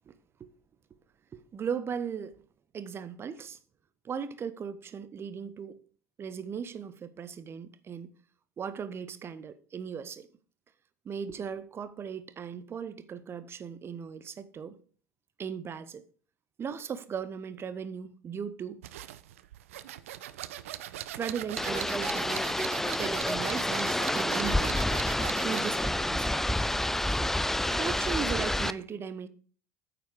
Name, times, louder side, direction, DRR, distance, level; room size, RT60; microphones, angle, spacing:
voice 1, 0.1-0.5 1.3-2.4 2.7-3.6 4.0-5.8 6.2-8.1 8.6-10.3 11.0-14.8 15.4-16.0 16.6-18.8 21.1-22.5 23.0-24.8 25.4-26.5 27.2-27.3 27.7-29.3, right 7 dB, 30° right, 0.9 m, -37 dB
sound 1, 18.8-25.8, right 13 dB, 70° right, 0.6 m, -40 dB
sound 2, 21.6-28.7, left 1 dB, 5° left, 0.4 m, -29 dB
9.1 x 7.7 x 4.9 m
figure-of-eight pair, 65°, 8 cm